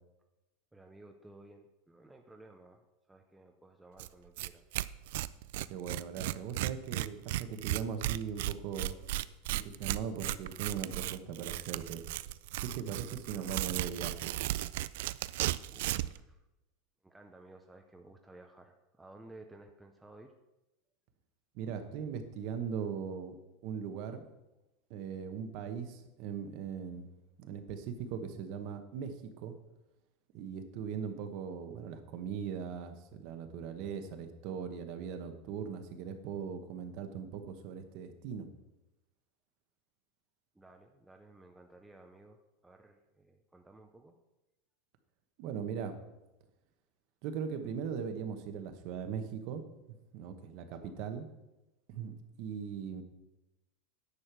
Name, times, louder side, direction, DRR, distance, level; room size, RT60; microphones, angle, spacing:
voice 1, 0.7-4.7 13.3-13.7 15.7-16.4 17.0-20.3 40.5-44.2 50.8-51.0, right 2 dB, 5° right, 4 dB, 0.5 m, -56 dB
Tearing, 4.0-4.1 4.4-4.5 4.7-16.2, right 15 dB, 65° right, 0.3 m, -35 dB
voice 2, 5.7-9.0 9.5-12.0 12.6-14.4 21.5-23.4 23.6-24.3 24.9-27.1 27.4-29.5 30.3-38.5 45.4-45.9 47.2-51.3 51.9-53.0, right 7 dB, 45° right, 8 dB, 1.1 m, -39 dB
9.8 x 6.5 x 6.0 m, 0.98 s
supercardioid pair, 175°, 0 cm